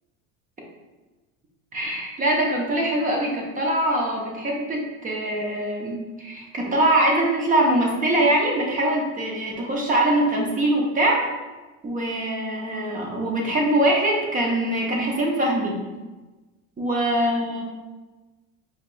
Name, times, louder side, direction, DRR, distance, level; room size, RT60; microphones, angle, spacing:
voice 1, 1.7-11.2 11.8-15.8 16.8-17.6, right 1 dB, 25° right, -1 dB, 0.6 m, -23 dB
4.9 x 3.4 x 2.5 m, 1.2 s
cardioid pair, 150°, 35 cm